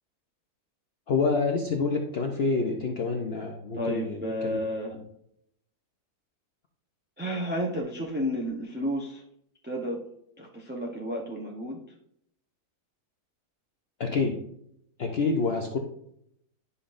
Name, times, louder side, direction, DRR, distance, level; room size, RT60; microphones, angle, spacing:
voice 1, 1.1-4.6 4.9-5.0 14.0-14.4 15.0-15.8, left 4 dB, 50° left, 2 dB, 0.8 m, -27 dB
voice 2, 3.7-5.0 7.2-9.2 9.6-10.1 10.4-11.8, equal, 10° right, -2 dB, 0.6 m, -31 dB
10.0 x 5.5 x 2.5 m, 0.73 s
omnidirectional pair, 1.6 m